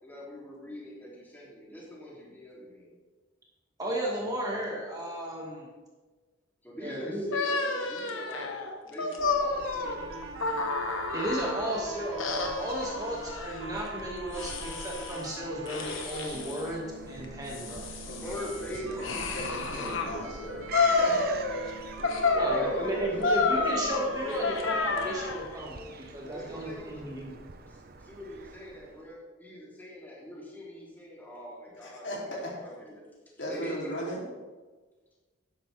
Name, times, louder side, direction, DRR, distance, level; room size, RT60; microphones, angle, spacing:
voice 1, 0.0-2.9 6.6-8.5 8.8-10.1 18.2-19.1 19.7-20.4 22.0-24.6 26.2-27.1 27.7-33.0 33.5-34.0, equal, 10° left, -6 dB, 3.2 m, -42 dB
voice 2, 3.8-5.7 6.8-7.3 11.1-17.9 22.3-27.3, right 1 dB, 20° right, -4 dB, 2.1 m, -34 dB
sound 1, 7.3-11.8 12.2-13.7 14.3-15.3 15.7-16.7 17.2-20.1 20.7-21.7 22.0-25.5, left 3 dB, 80° left, 1.4 m, -30 dB
Fowl / Gull seagull, 9.2-29.1, right 4 dB, 50° right, 0.8 m, -46 dB
sound 2, 9.8-15.9 16.3-25.3, right 2 dB, 85° right, 1.1 m, -44 dB
voice 3, 18.1-21.3 31.8-32.5 33.4-34.2, equal, 60° left, -4 dB, 3.3 m, -38 dB
12.5 x 10.5 x 3.6 m, 1.3 s
head